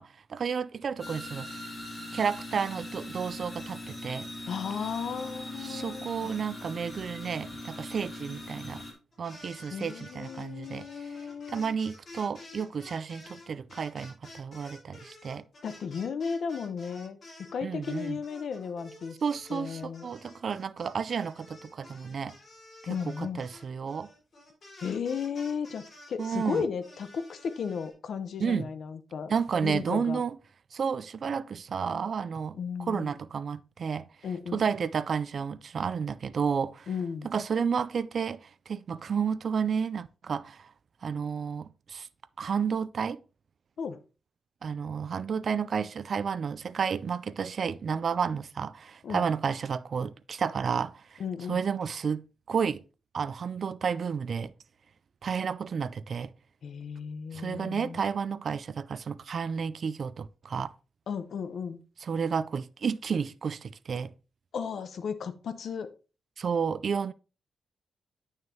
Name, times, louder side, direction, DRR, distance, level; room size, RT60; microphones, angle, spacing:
voice 1, 0.0-1.5 2.1-4.3 5.6-8.8 9.2-10.9 11.5-15.4 17.6-18.2 19.2-22.3 22.9-24.1 26.2-26.6 28.4-28.7 29.3-30.4 30.7-32.6 32.9-34.0 34.5-36.9 37.2-40.7 41.0-42.1 42.4-43.2 44.6-51.2 51.5-52.8 53.1-54.5 55.2-56.3 57.3-60.7 62.0-64.1 66.4-67.1, right 6 dB, 45° right, 0.3 m, -31 dB
sound 1, 1.0-8.9, left 1 dB, 10° left, 2.3 m, -41 dB
voice 2, 4.5-6.3 9.7-11.8 15.6-17.2 17.5-19.2 19.5-20.1 22.9-23.4 24.8-29.3 29.6-30.2 32.6-33.2 34.2-34.6 36.9-37.3 43.8-44.0 49.0-49.2 51.2-51.6 56.6-58.0 61.1-61.8 64.5-65.9, left 6 dB, 60° left, 0.7 m, -35 dB
sound 2, 9.1-17.5 17.8-27.9, left 2 dB, 35° left, 3.9 m, -51 dB
9.0 x 6.4 x 2.8 m
wide cardioid pair, 170°, 0 cm